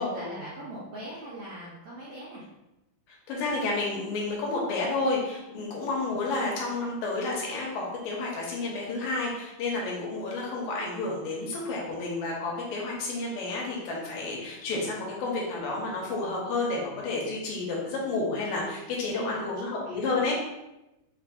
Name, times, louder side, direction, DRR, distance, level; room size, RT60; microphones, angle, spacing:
voice 1, 0.0-2.5 5.5-5.8 19.1-19.5 19.8-20.3, right 1 dB, 75° right, -7 dB, 1.7 m, -41 dB
voice 2, 3.1-20.3, left 3 dB, 80° left, -3 dB, 2.3 m, -30 dB
5.6 x 2.5 x 2.3 m, 0.96 s
omnidirectional pair, 4.1 m